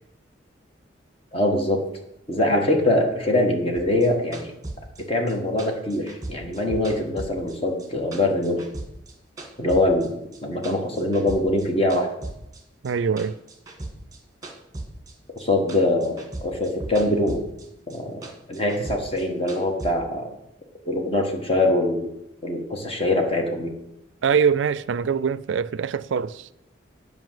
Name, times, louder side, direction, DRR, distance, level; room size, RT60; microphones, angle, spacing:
voice 1, 1.3-1.8 2.3-4.5 5.1-8.6 9.6-10.1 10.4-12.1 15.4-17.4 17.9-18.2 18.5-20.3 20.9-22.1 22.4-23.7, left 1 dB, 30° left, 1.8 m, -23 dB
sound 1, 3.8-7.9 8.1-10.1 10.3-11.7 11.9-15.4 15.7-17.7 17.9-19.9, right 2 dB, 20° right, 1.7 m, -37 dB
voice 2, 12.8-13.4 24.2-26.5, right 6 dB, 75° right, 0.4 m, -23 dB
9.3 x 5.3 x 7.7 m
head